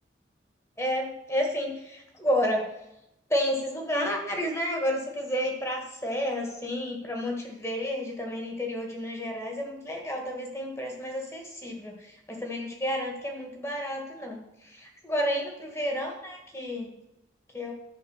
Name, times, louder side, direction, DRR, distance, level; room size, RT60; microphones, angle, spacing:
voice 1, 0.8-2.7 3.3-16.9 17.5-17.7, equal, 15° left, 1 dB, 1.8 m, -31 dB
10.5 x 5.2 x 7.3 m, 0.85 s
head